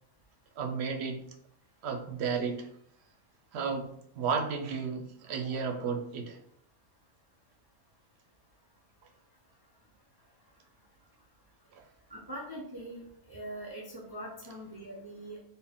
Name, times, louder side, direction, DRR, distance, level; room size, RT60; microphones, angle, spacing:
voice 1, 0.6-1.2 1.8-2.7 3.5-6.4 11.7-11.8, right 5 dB, 65° right, 5 dB, 0.7 m, -33 dB
voice 2, 12.1-13.0 13.3-15.4, right 1 dB, 35° right, -4 dB, 0.4 m, -42 dB
4.2 x 2.1 x 3.5 m, 0.67 s
omnidirectional pair, 1.4 m